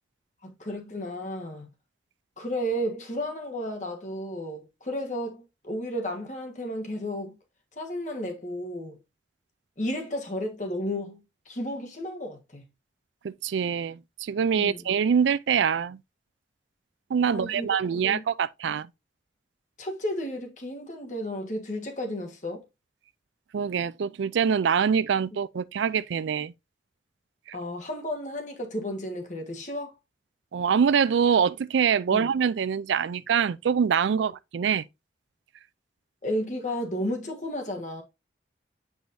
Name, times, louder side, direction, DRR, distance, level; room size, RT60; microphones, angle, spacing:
voice 1, 0.4-1.7 2.4-7.4 7.8-9.0 9.8-11.2 11.5-12.6 14.5-14.8 17.3-18.2 19.8-22.6 27.5-30.0 32.1-32.3 36.2-38.0, equal, 40° left, 1.4 m, -33 dB
voice 2, 13.2-16.0 17.1-18.9 23.5-26.5 30.5-34.8, right 7 dB, 85° right, 0.4 m, -24 dB
8.0 x 4.9 x 2.6 m
head